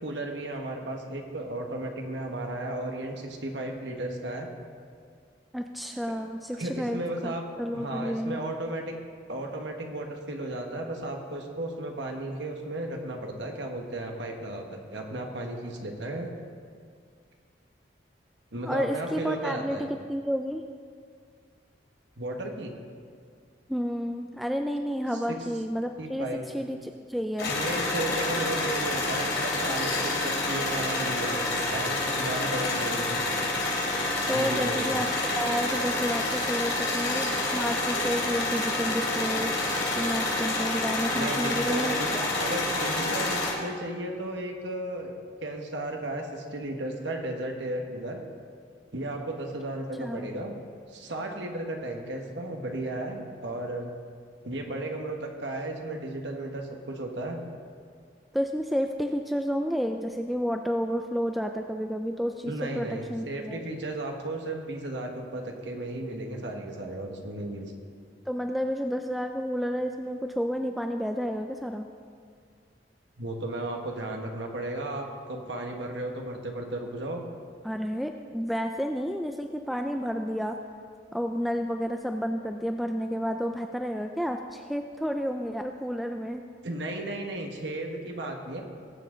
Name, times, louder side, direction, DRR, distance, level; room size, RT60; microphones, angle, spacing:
voice 1, 0.0-4.5 6.5-7.4 7.7-8.9 9.3-16.3 18.5-19.9 22.2-22.7 25.3-25.4 26.0-26.6 27.5-33.2 34.3-34.9 41.1-42.1 42.4-48.2 48.9-50.5 50.9-53.9 54.4-57.4 62.4-67.7 73.2-77.2 86.6-88.6, right 1 dB, 75° right, 2 dB, 1.4 m, -34 dB
voice 2, 5.5-8.4 18.6-19.8 20.1-20.6 23.7-26.3 26.5-27.5 34.3-35.1 35.3-39.5 40.0-42.3 50.0-50.3 58.3-63.6 68.3-71.9 77.6-80.6 81.1-86.4, equal, ahead, 4 dB, 0.3 m, -30 dB
sound 1, 27.4-43.5, left 2 dB, 70° left, 2.8 m, -28 dB
20.0 x 7.5 x 3.8 m, 2.1 s
head